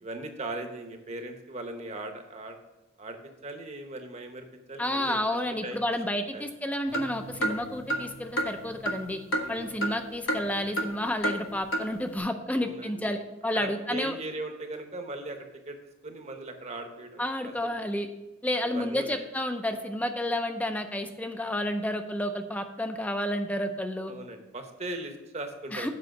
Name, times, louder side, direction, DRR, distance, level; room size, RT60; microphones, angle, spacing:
voice 1, 0.0-2.6 3.0-3.2 3.4-5.8 6.3-6.4 9.4-9.8 12.5-13.2 13.5-15.4 15.7-15.8 16.0-17.7 18.6-19.3 24.1-25.9, right 2 dB, 30° right, 5 dB, 0.9 m, -39 dB
voice 2, 4.8-9.2 9.5-14.2 17.2-18.1 18.4-24.1 25.7-25.9, left 1 dB, 5° left, 7 dB, 0.5 m, -30 dB
sound 1, 6.9-10.0 10.3-10.9 11.2-11.4 11.7-11.8, right 1 dB, 70° left, 1.0 m, -30 dB
7.7 x 5.4 x 5.9 m, 1.0 s
head